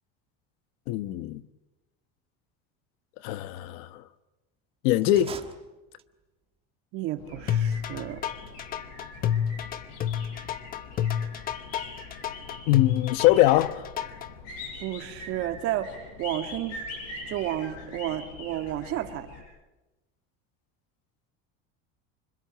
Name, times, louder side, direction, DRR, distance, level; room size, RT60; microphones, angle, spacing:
voice 1, 0.9-1.4 3.2-4.0 4.8-5.3 12.7-13.9, left 15 dB, 75° left, 1.2 m, -22 dB
sound 1, 5.0-6.3, right 6 dB, 20° right, 1.5 m, -43 dB
voice 2, 6.9-8.2 14.8-16.8 17.3-19.3, right 12 dB, 50° right, 2.3 m, -32 dB
sound 2, 7.2-19.4, left 2 dB, 55° left, 7.7 m, -43 dB
sound 3, 7.5-14.3, left 9 dB, 30° left, 1.0 m, -29 dB
26.0 x 25.0 x 9.1 m
cardioid pair, 170°, 29 cm